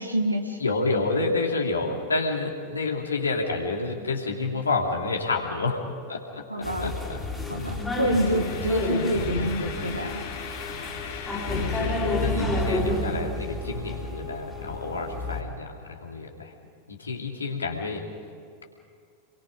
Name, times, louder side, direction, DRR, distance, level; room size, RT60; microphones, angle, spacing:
voice 1, 0.0-0.6 6.5-6.9 7.5-10.2 11.9-12.0, equal, 85° right, 3 dB, 1.6 m, -27 dB
voice 2, 0.6-5.8 6.1-7.2 7.6-7.9 10.7-10.8 11.4-16.5 16.9-18.1, left 3 dB, 75° left, 1 dB, 2.8 m, -29 dB
sound 1, 6.6-15.4, left 2 dB, 10° left, 3.5 m, -30 dB
sound 2, 8.0-13.0, left 7 dB, 55° left, 3.0 m, -40 dB
28.0 x 22.5 x 5.2 m, 2.3 s
figure-of-eight pair, 90°, 0 cm